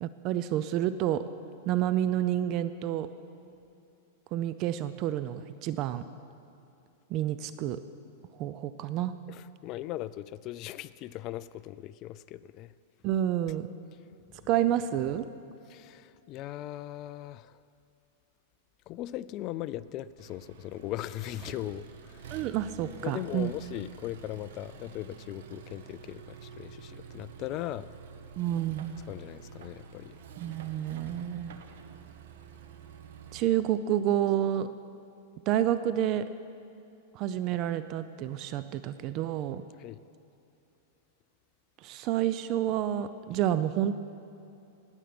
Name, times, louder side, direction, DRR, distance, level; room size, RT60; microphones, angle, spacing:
voice 1, 0.0-1.3 1.7-3.1 4.3-6.0 7.1-7.8 8.4-9.1 13.0-13.7 14.5-15.3 22.3-23.5 28.4-29.0 30.4-31.5 33.3-34.7 35.5-36.3 37.1-39.6 41.8-44.0, right 11 dB, 40° right, 13 dB, 0.5 m, -29 dB
voice 2, 9.3-12.7 14.3-14.5 15.7-17.6 18.9-22.4 23.0-27.9 29.1-30.2 39.8-40.0, left 14 dB, 40° left, 15 dB, 0.3 m, -39 dB
Accelerating revving vroom, 20.2-33.4, right 6 dB, 75° right, 1.1 m, -48 dB
19.5 x 8.2 x 6.0 m, 2.8 s
supercardioid pair, 135°, 0 cm